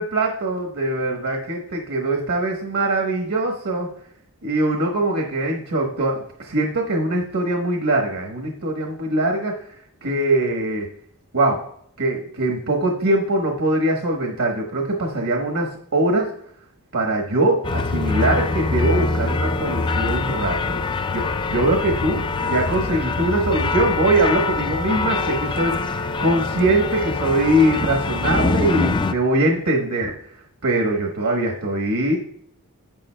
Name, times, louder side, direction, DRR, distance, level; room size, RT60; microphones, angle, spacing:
voice 1, 0.0-3.9 4.4-9.6 10.0-10.9 11.3-11.6 12.0-16.3 16.9-30.1 30.6-32.2, right 1 dB, 70° right, 1 dB, 1.1 m, -22 dB
sound 1, 17.6-29.1, left 3 dB, 20° left, 0.3 m, -24 dB
10.5 x 7.7 x 2.2 m, 0.67 s
head